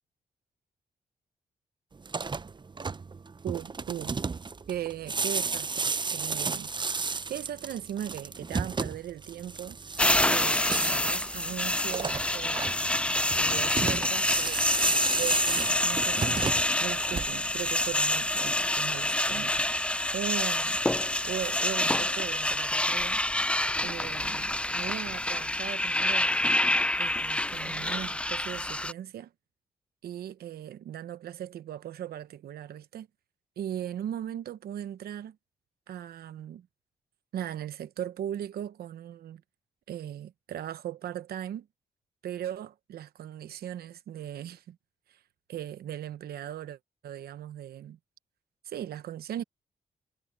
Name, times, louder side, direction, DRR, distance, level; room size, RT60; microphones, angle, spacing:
sound 1, 2.0-17.6, right 4 dB, 30° right, 0.7 m, -33 dB
voice 1, 3.4-4.2 4.7-6.7 7.3-9.8 10.2-12.7 13.3-14.6 15.2-20.8 21.2-23.2 23.8-26.4 27.0-29.3 30.0-33.1 33.6-35.4 35.9-36.7 37.3-39.4 39.9-41.7 42.2-44.8 45.1-45.2 45.5-48.0 48.6-49.4, right 10 dB, 75° right, 1.0 m, -38 dB
sound 2, 10.0-28.9, left 1 dB, 5° left, 0.4 m, -27 dB
supercardioid pair, 55°, 16 cm